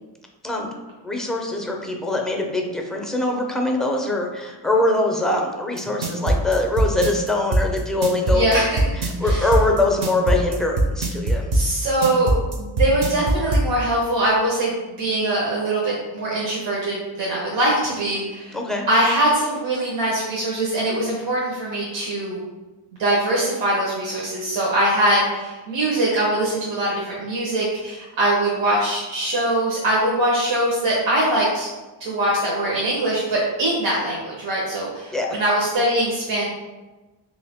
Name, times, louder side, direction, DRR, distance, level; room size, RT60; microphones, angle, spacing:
voice 1, 1.0-8.6 9.0-11.4 18.5-18.9 35.1-35.4, left 2 dB, ahead, 1 dB, 0.5 m, -23 dB
sound 1, 5.8-13.7, right 2 dB, 60° right, 0.7 m, -20 dB
voice 2, 8.3-8.9 9.2-9.5 11.5-18.6 18.9-22.4 23.0-31.7 32.0-36.5, right 1 dB, 80° right, -6 dB, 1.0 m, -22 dB
3.3 x 2.7 x 3.5 m, 1.2 s
cardioid pair, 90°, 45 cm